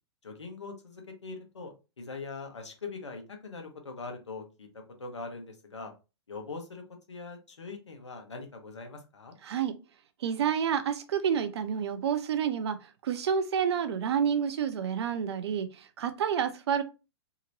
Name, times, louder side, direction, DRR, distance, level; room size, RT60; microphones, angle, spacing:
voice 1, 0.2-5.9 6.3-6.8 7.1-9.4, left 4 dB, 90° left, 3 dB, 1.0 m, -42 dB
voice 2, 10.2-12.8 13.0-16.8, right 8 dB, 70° right, 10 dB, 0.6 m, -29 dB
2.9 x 2.8 x 2.6 m, 0.30 s
hypercardioid pair, 115°, 14 cm